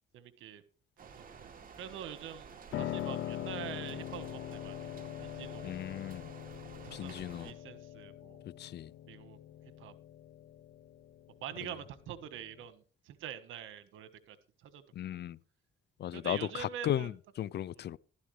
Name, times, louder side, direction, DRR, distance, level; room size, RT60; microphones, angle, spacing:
voice 1, 0.1-0.6 1.0-1.5 1.8-4.9 5.2-5.8 6.8-8.4 9.1-9.4 9.8-9.9 11.4-14.8 15.1-15.2 16.1-17.1, right 10 dB, 85° right, 1.5 m, -45 dB
sound 1, 1.0-7.5, right 6 dB, 45° right, 2.6 m, -52 dB
Piano, 2.7-12.7, left 12 dB, 75° left, 1.1 m, -43 dB
voice 2, 5.6-6.3 6.9-7.5 8.6-8.9 15.0-15.4 16.0-17.1 17.4-18.0, left 11 dB, 60° left, 0.5 m, -36 dB
14.5 x 12.5 x 3.3 m
cardioid pair, 90°, 20 cm